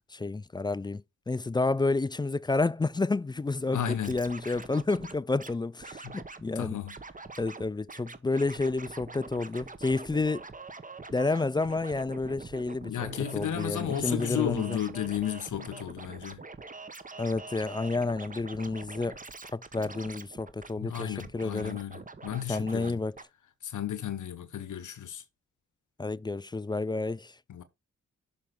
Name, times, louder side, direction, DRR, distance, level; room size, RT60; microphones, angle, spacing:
voice 1, 0.1-6.8 7.4-10.4 11.1-14.8 17.2-19.2 19.5-21.8 22.5-23.2 26.0-27.3, left 3 dB, 15° left, 0.4 m, -30 dB
voice 2, 3.7-4.2 6.0-6.2 6.5-7.0 12.9-16.4 20.8-23.0 23.6-25.2 27.5-27.6, left 10 dB, 70° left, 1.2 m, -33 dB
Scratching (performance technique), 3.8-5.5 5.8-6.4 6.9-7.6 7.9-22.9 23.2-23.3, right 3 dB, 25° right, 1.2 m, -45 dB
6.9 x 3.5 x 5.9 m
supercardioid pair, 45°, 31 cm